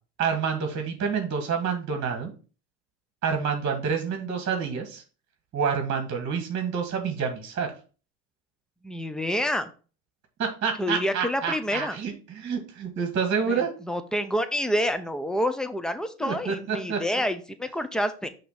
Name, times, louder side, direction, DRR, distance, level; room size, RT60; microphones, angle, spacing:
voice 1, 0.2-2.3 3.2-5.0 5.5-7.7 10.4-13.7 16.2-17.0, right 6 dB, 30° right, 4 dB, 1.6 m, -28 dB
voice 2, 8.8-9.7 10.8-12.0 13.5-13.6 13.9-18.3, equal, ahead, 10 dB, 0.7 m, -28 dB
5.9 x 3.1 x 5.7 m, 0.36 s
supercardioid pair, 100°, 37 cm